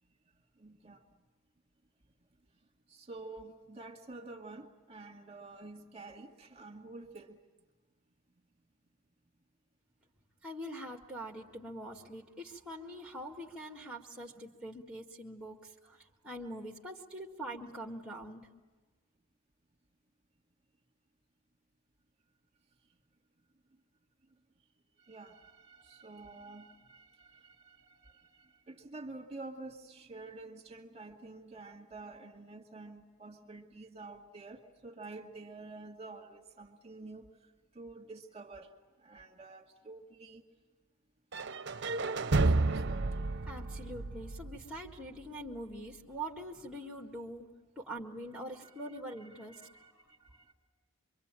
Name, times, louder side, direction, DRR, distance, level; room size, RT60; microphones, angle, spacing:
voice 1, 0.6-1.0 2.9-7.4 25.0-37.3 37.7-38.7 39.0-40.4 42.3-43.5 48.6-48.7 49.3-50.5, right 3 dB, 25° right, 2 dB, 2.2 m, -49 dB
voice 2, 10.4-18.5 43.5-47.5 47.8-50.0, right 1 dB, 5° right, 0 dB, 1.9 m, -44 dB
sound 1, 41.3-45.2, right 3 dB, 50° right, 0.8 m, -31 dB
26.5 x 24.0 x 9.0 m, 1.3 s
head